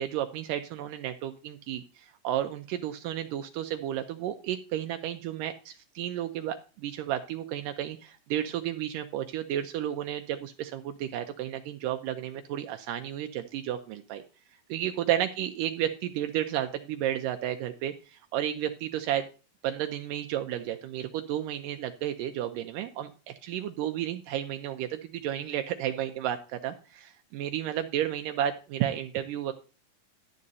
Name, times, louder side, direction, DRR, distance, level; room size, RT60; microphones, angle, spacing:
voice 1, 0.0-14.2 14.7-19.3 19.6-29.5, right 11 dB, 80° right, 6 dB, 2.2 m, -32 dB
12.5 x 8.6 x 2.7 m, 0.34 s
omnidirectional pair, 4.0 m